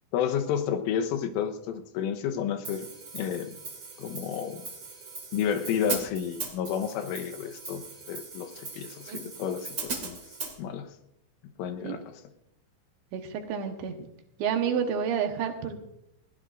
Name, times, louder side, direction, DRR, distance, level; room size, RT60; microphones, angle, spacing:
voice 1, 0.1-2.9 3.1-3.6 4.0-4.7 5.3-10.2 10.6-10.9 11.6-12.0, left 8 dB, 85° left, 6 dB, 3.6 m, -31 dB
Hi-hat, 2.6-10.5, right 4 dB, 35° right, 2.0 m, -39 dB
voice 2, 13.1-14.1 14.4-15.8, right 7 dB, 70° right, 4 dB, 3.3 m, -30 dB
21.0 x 17.5 x 2.6 m, 0.79 s
omnidirectional pair, 5.6 m